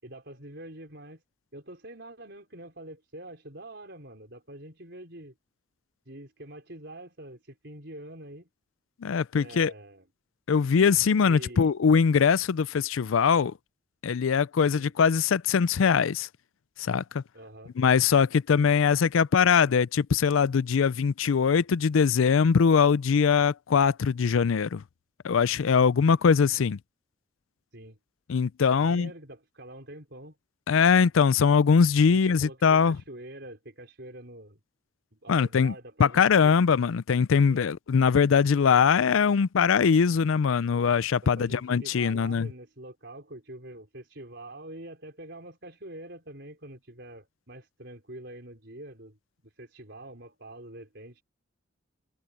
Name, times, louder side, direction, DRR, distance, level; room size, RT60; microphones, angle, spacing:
voice 1, 0.0-1.2 1.5-5.3 6.1-8.5 9.3-10.0 11.2-11.7 14.7-14.9 17.3-17.7 27.7-28.0 28.7-30.4 32.1-34.6 35.1-36.5 37.5-37.7 41.2-49.2 49.4-51.2, right 1 dB, 55° right, 5.2 m, -45 dB
voice 2, 9.0-9.7 10.5-13.5 14.0-16.3 16.8-17.2 17.8-24.8 25.2-26.8 28.3-29.1 30.7-33.0 35.3-35.7 36.0-42.5, left 6 dB, 85° left, 0.4 m, -22 dB
head